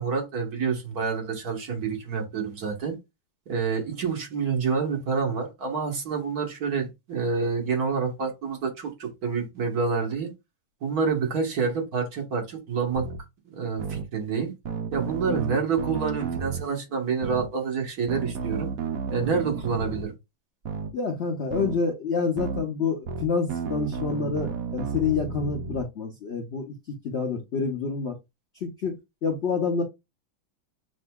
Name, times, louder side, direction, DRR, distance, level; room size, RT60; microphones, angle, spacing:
voice 1, 0.0-3.0 3.5-10.3 10.8-13.1 13.5-14.5 14.9-18.7 19.1-20.1, right 5 dB, 50° right, 1.6 m, -28 dB
sound 1, 12.9-13.2 13.8-14.1 14.7-16.6 17.2-17.5 18.1-20.1 20.6-20.9 21.5-21.8 22.4-22.6 23.1-25.8, right 5 dB, 85° right, 0.7 m, -32 dB
voice 2, 15.2-15.6 20.9-28.2 28.6-29.8, left 5 dB, 90° left, 0.5 m, -28 dB
7.4 x 2.7 x 2.2 m
omnidirectional pair, 2.3 m